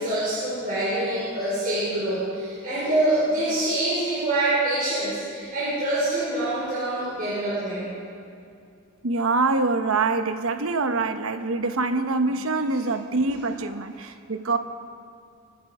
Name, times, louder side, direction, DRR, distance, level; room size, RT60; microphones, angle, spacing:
voice 1, 0.0-7.8, right 1 dB, 45° right, -10 dB, 4.6 m, -25 dB
voice 2, 9.0-14.6, right 3 dB, 80° right, 8 dB, 1.0 m, -25 dB
24.0 x 9.4 x 5.0 m, 2.5 s
head